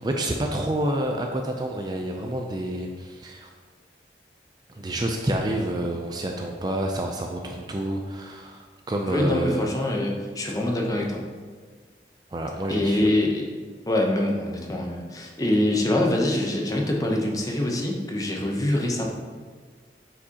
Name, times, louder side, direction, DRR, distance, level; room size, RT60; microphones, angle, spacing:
voice 1, 0.0-3.5 4.7-9.7 12.3-13.1, right 1 dB, 25° right, 2 dB, 0.4 m, -28 dB
voice 2, 9.1-11.2 12.7-19.1, left 1 dB, 20° left, 0 dB, 0.8 m, -25 dB
8.4 x 5.0 x 2.9 m, 1.5 s
head